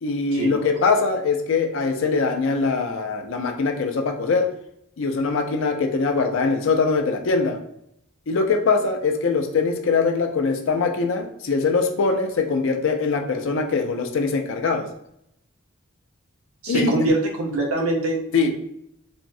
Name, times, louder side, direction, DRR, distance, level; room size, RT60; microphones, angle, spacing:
voice 1, 0.0-4.5 5.0-7.6 8.3-14.9 16.7-16.9 18.3-18.5, left 4 dB, 65° left, 4 dB, 0.4 m, -22 dB
voice 2, 16.6-18.2, right 1 dB, 90° right, 1 dB, 0.7 m, -23 dB
3.5 x 2.0 x 2.6 m, 0.75 s
head